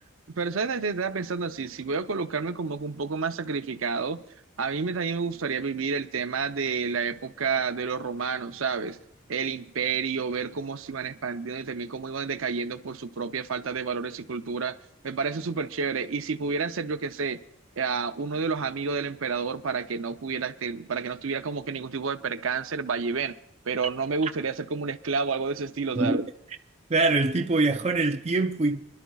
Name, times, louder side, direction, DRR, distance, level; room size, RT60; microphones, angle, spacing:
voice 1, 0.3-4.2 4.6-9.0 9.3-14.8 15.0-17.4 17.8-23.4 23.7-26.3, right 5 dB, 80° right, 0.7 m, -30 dB
voice 2, 26.9-28.9, right 3 dB, 30° right, 0.5 m, -24 dB
27.0 x 11.5 x 2.4 m
head